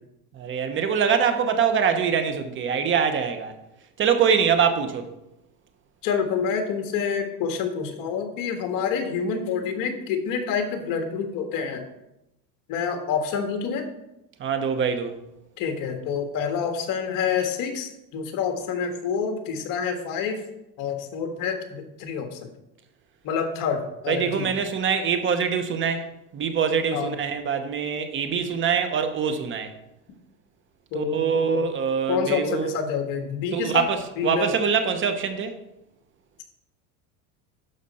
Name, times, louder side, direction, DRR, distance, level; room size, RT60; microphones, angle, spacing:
voice 1, 0.3-3.5 4.0-5.1 14.4-15.1 24.1-26.1 26.3-29.7 30.9-32.7 33.5-35.5, right 6 dB, 30° right, 0.9 m, -24 dB
voice 2, 6.0-11.8 12.7-13.9 15.6-20.4 20.8-22.5 23.2-24.5 26.9-27.1 30.9-31.7 32.1-33.9 34.2-34.5, left 6 dB, 50° left, 1.6 m, -27 dB
12.0 x 5.0 x 4.3 m
supercardioid pair, 140°, 42 cm